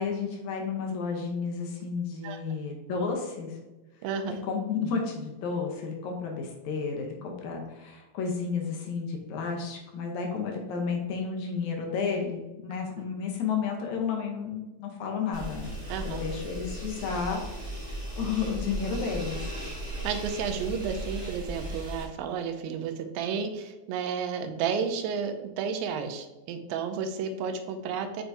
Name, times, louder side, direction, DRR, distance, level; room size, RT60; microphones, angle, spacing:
voice 1, 0.0-3.6 4.3-15.7 16.0-19.5, left 5 dB, 75° left, 1 dB, 1.7 m, -32 dB
voice 2, 4.0-4.5 15.9-16.2 20.0-28.2, right 6 dB, 80° right, 6 dB, 2.2 m, -32 dB
sound 1, 15.3-22.0, right 1 dB, 35° right, 1.0 m, -36 dB
7.8 x 4.5 x 2.6 m, 1.1 s
omnidirectional pair, 4.5 m